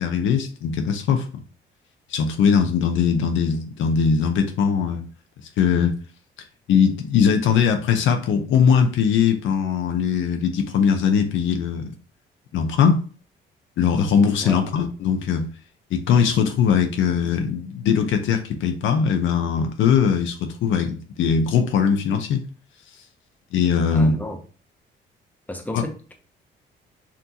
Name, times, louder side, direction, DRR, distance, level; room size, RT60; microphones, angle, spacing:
voice 1, 0.0-1.4 2.1-5.0 5.6-5.9 6.7-11.9 12.5-13.0 13.8-15.5 15.9-22.4 23.5-24.2 25.7-25.8, left 6 dB, 80° left, 6 dB, 0.8 m, -20 dB
voice 2, 23.9-24.4 25.5-26.1, left 1 dB, 10° left, 4 dB, 0.9 m, -33 dB
5.9 x 2.6 x 2.9 m, 0.38 s
cardioid pair, 90°, 20 cm